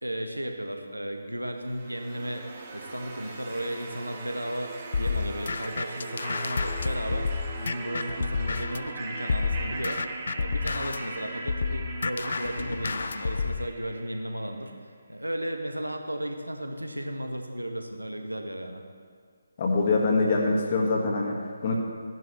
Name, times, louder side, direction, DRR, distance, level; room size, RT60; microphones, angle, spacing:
voice 1, 0.0-14.7 15.1-18.8, right 1 dB, 80° right, 4 dB, 1.3 m, -35 dB
sound 1, 1.6-14.5, right 3 dB, 25° right, 1.4 m, -40 dB
sound 2, 4.9-8.9 9.3-13.7, left 4 dB, 50° left, 0.3 m, -30 dB
voice 2, 19.6-21.8, left 3 dB, 35° left, 0 dB, 1.7 m, -24 dB
15.0 x 11.0 x 3.2 m, 2.1 s
figure-of-eight pair, 145°, 0 cm